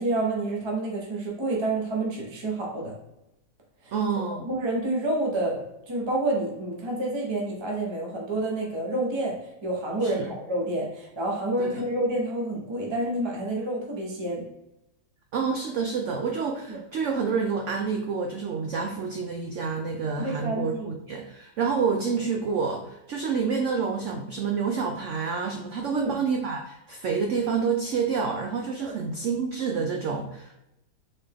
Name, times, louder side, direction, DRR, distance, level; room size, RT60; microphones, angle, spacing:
voice 1, 0.0-3.0 3.8-3.9 4.4-14.5 16.7-16.8 20.2-20.9 25.9-26.2 28.8-28.9, right 2 dB, 25° right, -2 dB, 0.7 m, -28 dB
voice 2, 3.9-4.5 10.0-10.3 11.6-11.8 15.3-30.5, right 5 dB, 85° right, 2 dB, 0.6 m, -28 dB
4.4 x 3.4 x 3.5 m, 0.88 s
omnidirectional pair, 1.9 m